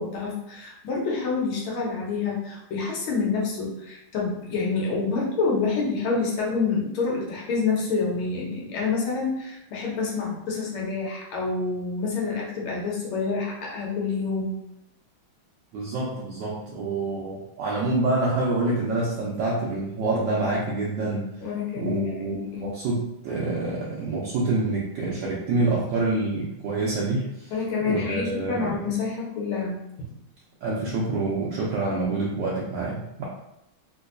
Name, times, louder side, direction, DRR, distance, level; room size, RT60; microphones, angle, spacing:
voice 1, 0.0-14.5 21.4-22.7 27.5-30.1, left 4 dB, 85° left, -3 dB, 1.7 m, -27 dB
voice 2, 15.7-21.3 21.7-27.5 27.8-29.0 30.6-33.3, right 2 dB, 70° right, -5 dB, 1.2 m, -27 dB
3.8 x 2.6 x 2.5 m, 0.84 s
omnidirectional pair, 2.2 m